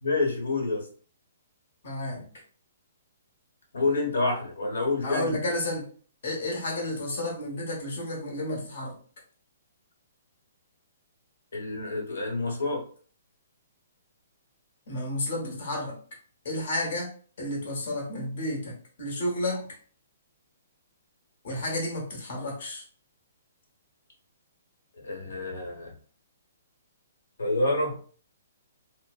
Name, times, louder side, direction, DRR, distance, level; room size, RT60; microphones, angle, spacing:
voice 1, 0.0-0.9 3.7-5.4 11.5-12.8 25.0-25.9 27.4-28.0, left 2 dB, 85° left, 0 dB, 1.0 m, -28 dB
voice 2, 1.8-2.2 5.0-5.9 6.2-9.0 14.9-16.0 16.4-17.1 17.4-19.8 21.4-22.8, left 1 dB, 55° left, -1 dB, 1.0 m, -31 dB
2.6 x 2.0 x 2.3 m, 0.43 s
hypercardioid pair, 165°, 0 cm